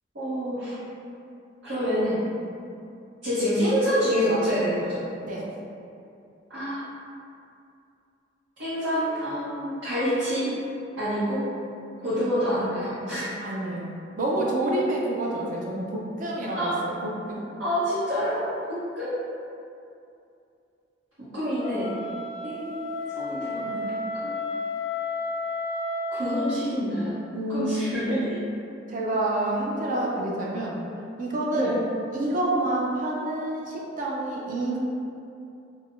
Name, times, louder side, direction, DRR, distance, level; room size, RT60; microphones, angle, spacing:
voice 1, 0.1-0.8 1.6-2.2 3.2-5.0 6.5-6.8 8.6-10.5 11.0-11.4 12.0-13.3 16.5-16.7 17.6-18.4 18.9-19.1 21.3-21.9 22.4-22.9 23.1-23.8 24.1-24.3 26.1-27.1 27.5-28.2 31.5-31.8, equal, 75° right, -14 dB, 0.8 m, -27 dB
voice 2, 13.4-17.4 27.3-28.3 28.9-30.8 31.2-31.7 32.1-34.8, right 1 dB, 45° right, -3 dB, 0.4 m, -28 dB
Wind instrument woodwind instrument, 21.6-26.6, left 2 dB, 85° left, 0.4 m, -32 dB
2.5 x 2.1 x 3.5 m, 2.6 s
head